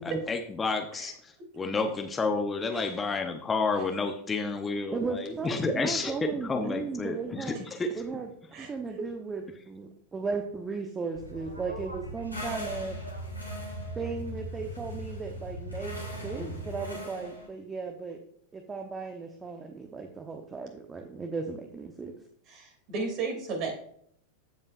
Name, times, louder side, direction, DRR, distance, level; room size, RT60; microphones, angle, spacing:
voice 1, 0.0-7.4 7.9-8.0, left 4 dB, 15° left, 4 dB, 0.8 m, -30 dB
voice 2, 4.9-7.6 8.0-8.3 8.6-13.0 13.9-18.2 18.5-22.1, right 4 dB, 15° right, 4 dB, 1.0 m, -36 dB
sound 1, 11.1-16.9, equal, 85° right, 1.4 m, -40 dB
sound 2, 12.3-17.5, equal, 85° left, 2.7 m, -42 dB
voice 3, 22.5-23.7, right 4 dB, 40° right, 2 dB, 2.9 m, -34 dB
15.5 x 5.5 x 2.6 m, 0.65 s
figure-of-eight pair, 90°, 0 cm